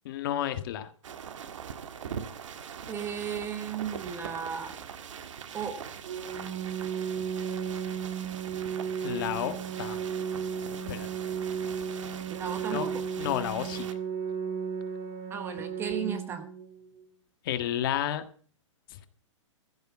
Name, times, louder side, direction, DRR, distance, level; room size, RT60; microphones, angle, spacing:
voice 1, 0.0-0.9 9.0-10.1 10.9-11.1 12.7-12.9 13.2-13.9 17.4-18.2, left 11 dB, 45° left, 1.6 m, -31 dB
sound 1, 1.0-13.9, right 8 dB, 70° right, 1.8 m, -42 dB
voice 2, 2.9-4.8 5.5-5.9 12.3-13.1 15.3-16.5, right 7 dB, 15° right, 1.1 m, -35 dB
Organ, 6.0-17.0, right 7 dB, 40° right, 3.4 m, -34 dB
15.0 x 6.8 x 8.5 m
hypercardioid pair, 155°, 16 cm